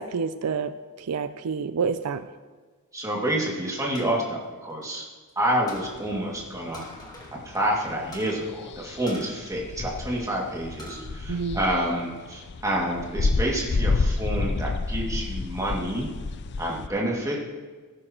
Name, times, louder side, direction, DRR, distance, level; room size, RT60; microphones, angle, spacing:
voice 1, 0.0-2.3 11.3-11.6, right 5 dB, 80° right, 11 dB, 0.5 m, -28 dB
voice 2, 2.9-5.0 5.4-6.9 7.4-16.1 16.6-17.4, right 1 dB, 15° right, -3 dB, 2.2 m, -28 dB
sound 1, 3.9-5.3 5.7-6.0 6.7-7.4 7.6-7.7 8.1-8.4 9.1-10.2 10.6-11.1 11.5-12.2, equal, 20° left, 2.0 m, -44 dB
sound 2, 5.7-16.9, left 3 dB, 50° left, 0.5 m, -30 dB
17.5 x 10.0 x 3.0 m, 1.4 s
head